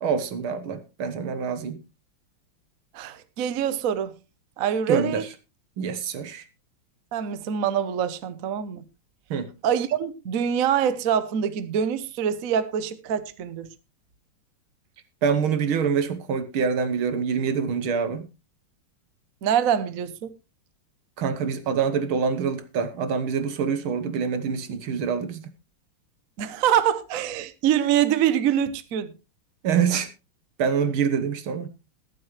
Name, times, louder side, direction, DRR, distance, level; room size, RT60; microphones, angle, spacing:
voice 1, 0.0-1.8 4.9-5.3 5.8-6.4 9.3-9.5 15.2-18.3 21.2-25.5 29.6-30.1 30.6-31.7, right 6 dB, 75° right, 2.0 m, -25 dB
voice 2, 2.9-4.1 4.6-5.2 7.1-8.8 9.6-13.7 19.4-20.3 26.4-29.1, right 9 dB, 55° right, 0.9 m, -24 dB
21.5 x 7.5 x 3.2 m
omnidirectional pair, 2.4 m